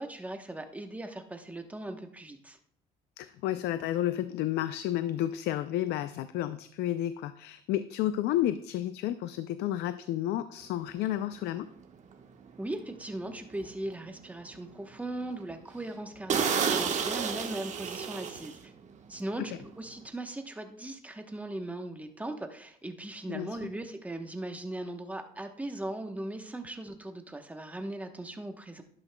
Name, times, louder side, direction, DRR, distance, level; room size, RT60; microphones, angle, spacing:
voice 1, 0.0-2.6 12.6-18.7 19.1-28.8, right 1 dB, 10° right, 5 dB, 1.0 m, -39 dB
voice 2, 3.2-11.7 19.5-19.6 23.3-23.7, left 12 dB, 80° left, 12 dB, 0.4 m, -31 dB
sound 1, 11.0-11.2 11.7-11.9 12.4-12.5 12.9-13.0 13.5-14.1 14.5-14.6 15.0-15.1 15.4-15.5 15.9-16.0 16.3-18.8 19.1-19.3, right 6 dB, 45° right, 1.2 m, -30 dB
11.5 x 11.0 x 2.2 m, 0.67 s
cardioid pair, 110°, 17 cm